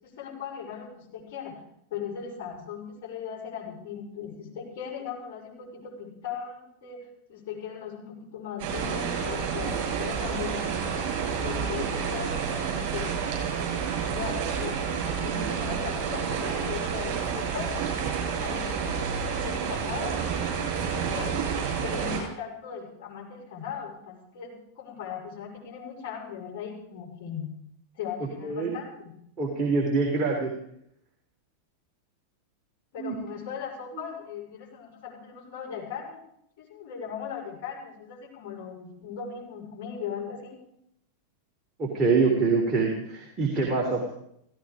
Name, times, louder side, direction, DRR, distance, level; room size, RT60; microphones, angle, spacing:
voice 1, 0.0-1.6 1.9-7.0 7.3-10.7 11.3-13.2 14.1-17.9 18.4-19.1 19.4-21.4 21.8-27.5 27.9-29.1 32.9-36.2 36.6-40.6, left 7 dB, 45° left, -3 dB, 6.2 m, -38 dB
sound 1, 8.6-22.2, right 6 dB, 45° right, 7.6 m, -29 dB
voice 2, 28.4-28.7 29.4-30.5 33.0-33.1 33.9-34.0 41.8-44.1, right 4 dB, 25° right, -1 dB, 3.5 m, -25 dB
17.0 x 15.5 x 5.1 m, 0.73 s
figure-of-eight pair, 90°, 0 cm